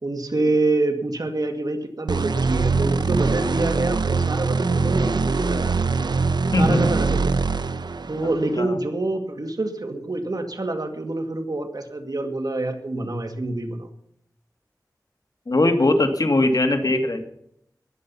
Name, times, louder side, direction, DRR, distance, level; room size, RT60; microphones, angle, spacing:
voice 1, 0.0-5.9 6.6-7.3 8.1-13.9, right 2 dB, 65° right, 5 dB, 2.2 m, -26 dB
sound 1, 2.1-8.5, right 4 dB, 85° right, 0.7 m, -23 dB
voice 2, 6.5-6.8 8.6-8.8 15.5-17.2, left 2 dB, 60° left, 4 dB, 2.5 m, -20 dB
20.5 x 7.9 x 5.7 m, 0.72 s
wide cardioid pair, 55°, 7 cm